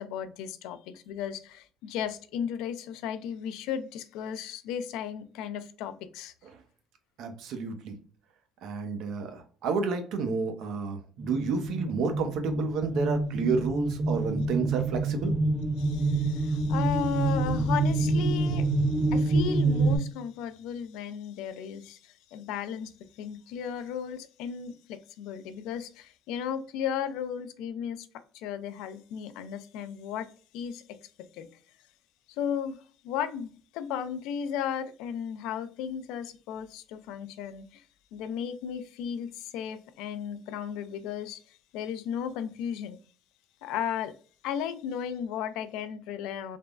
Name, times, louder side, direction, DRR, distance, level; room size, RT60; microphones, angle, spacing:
voice 1, 0.0-6.3 15.8-22.9 23.2-28.1 28.3-30.3 30.5-31.0 31.4-31.5 32.4-32.8 33.0-37.8 38.1-41.4 41.7-43.0 43.6-44.1 44.4-46.6, left 8 dB, 85° left, 11 dB, 0.3 m, -35 dB
voice 2, 7.2-7.9 8.6-15.3, right 4 dB, 75° right, 7 dB, 0.6 m, -30 dB
sound 1, 11.2-20.0, right 2 dB, 30° right, 1.0 m, -27 dB
3.3 x 2.0 x 2.3 m, 0.42 s
cardioid pair, 100°, 0 cm